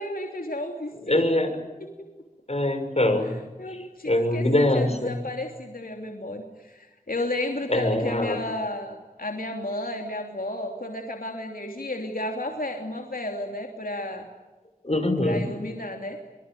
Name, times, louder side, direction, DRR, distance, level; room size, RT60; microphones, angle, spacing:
voice 1, 0.0-1.2 1.8-1.9 3.6-14.3 15.2-16.2, left 1 dB, 80° left, 3 dB, 3.0 m, -33 dB
voice 2, 1.1-1.5 2.5-3.3 3.7-5.2 7.7-8.4 14.8-15.4, left 1 dB, 45° left, 6 dB, 6.1 m, -23 dB
24.5 x 24.5 x 9.2 m, 1.2 s
wide cardioid pair, 50°, 15 cm